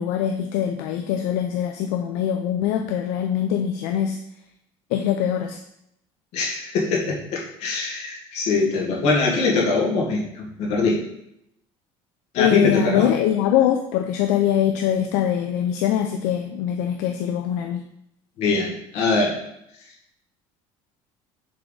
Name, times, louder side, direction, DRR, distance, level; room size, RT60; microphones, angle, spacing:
voice 1, 0.0-4.2 4.9-5.6 12.4-17.8, left 10 dB, 85° left, 4 dB, 0.5 m, -23 dB
voice 2, 6.3-11.0 12.3-13.1 18.4-19.4, left 3 dB, 65° left, -2 dB, 1.8 m, -22 dB
6.7 x 3.6 x 3.9 m, 0.78 s
cardioid pair, 130°, 12 cm